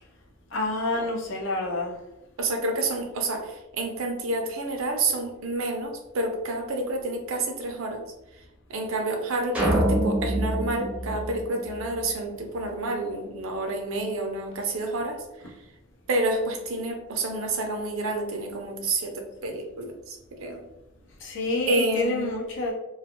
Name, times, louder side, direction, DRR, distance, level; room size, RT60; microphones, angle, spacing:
voice 1, 0.5-1.9 21.2-22.7, left 2 dB, 60° left, 0 dB, 0.6 m, -28 dB
voice 2, 2.4-8.0 8.7-15.5 16.1-20.6 21.7-22.4, right 2 dB, 75° right, 3 dB, 0.5 m, -29 dB
sound 1, 9.5-12.1, right 1 dB, 5° right, 0.6 m, -26 dB
2.4 x 2.3 x 2.8 m, 0.95 s
head